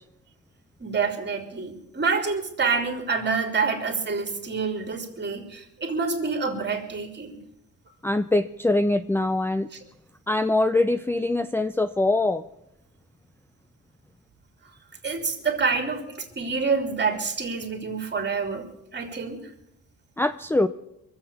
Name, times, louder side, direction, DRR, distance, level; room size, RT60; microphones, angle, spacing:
voice 1, 0.8-7.4 9.7-9.8 15.0-19.4, right 5 dB, 35° right, 4 dB, 3.2 m, -27 dB
voice 2, 8.0-9.7 10.3-12.4 20.2-20.7, left 2 dB, 10° left, 11 dB, 0.5 m, -23 dB
23.0 x 8.0 x 7.0 m, 0.82 s
cardioid pair, 90°, 30 cm